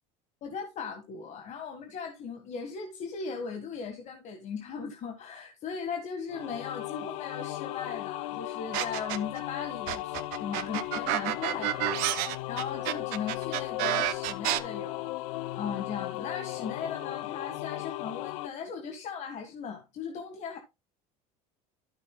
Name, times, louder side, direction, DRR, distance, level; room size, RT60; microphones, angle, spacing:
voice 1, 0.4-15.1 15.5-20.6, left 6 dB, 45° left, 1.7 m, -38 dB
sound 1, 6.3-18.5, left 16 dB, 85° left, 0.6 m, -36 dB
sound 2, 8.7-9.4 9.9-14.6, right 14 dB, 75° right, 1.2 m, -29 dB
13.0 x 7.9 x 2.3 m
supercardioid pair, 115°, 16 cm